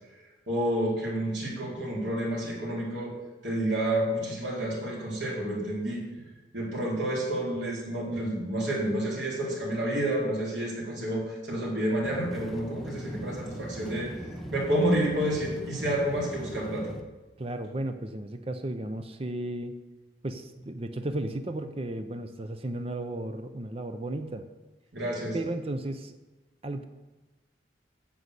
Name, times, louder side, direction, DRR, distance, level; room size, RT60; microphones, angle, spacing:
voice 1, 0.5-3.1 3.4-6.0 6.5-14.1 14.5-16.9 24.9-25.4, right 1 dB, 70° right, -4 dB, 4.1 m, -29 dB
sound 1, 12.0-17.0, equal, ahead, 0.9 m, -40 dB
voice 2, 17.4-19.8 20.2-24.5 25.3-26.1 26.6-26.8, right 1 dB, 30° right, 7 dB, 0.6 m, -34 dB
9.5 x 7.8 x 8.2 m, 1.2 s
head